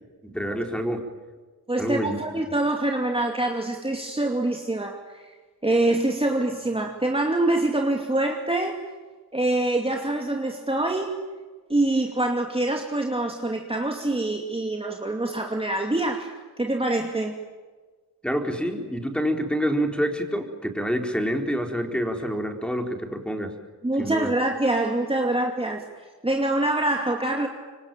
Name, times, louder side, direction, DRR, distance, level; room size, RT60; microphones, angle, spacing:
voice 1, 0.2-1.0 1.8-2.2 18.2-23.5 24.0-24.3, equal, 5° left, 4 dB, 4.1 m, -27 dB
voice 2, 1.7-5.2 5.6-8.8 9.3-11.1 11.7-17.4 23.8-25.8 26.2-27.5, right 2 dB, 15° right, 2 dB, 2.6 m, -25 dB
26.5 x 24.0 x 9.1 m, 1.4 s
wide cardioid pair, 85°, 36 cm